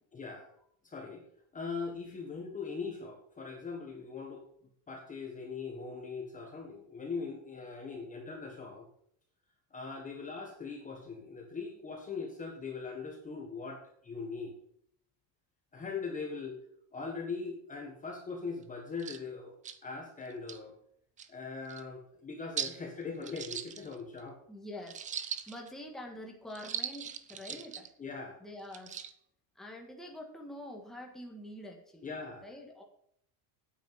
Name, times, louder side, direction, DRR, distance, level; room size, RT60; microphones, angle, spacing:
voice 1, 0.1-0.5 0.8-1.2 1.5-4.4 4.9-8.8 9.7-14.5 15.7-16.6 16.9-19.6 19.8-20.7 21.3-24.4 27.5-27.6 28.0-28.4 32.0-32.5, left 4 dB, 15° left, 1 dB, 1.5 m, -40 dB
sound 1, 18.6-18.7 19.0-19.2 19.6-19.8 20.3-20.6 21.2-21.3 21.7-21.8 22.6-22.8 23.2-24.2 24.9-25.7 26.5-27.9 28.6-29.1, right 8 dB, 15° right, 0.4 m, -39 dB
voice 2, 24.5-27.9 28.4-29.0 29.5-32.1 32.4-32.8, left 1 dB, ahead, 0 dB, 1.7 m, -46 dB
9.3 x 8.5 x 5.8 m, 0.68 s
cardioid pair, 170°, 47 cm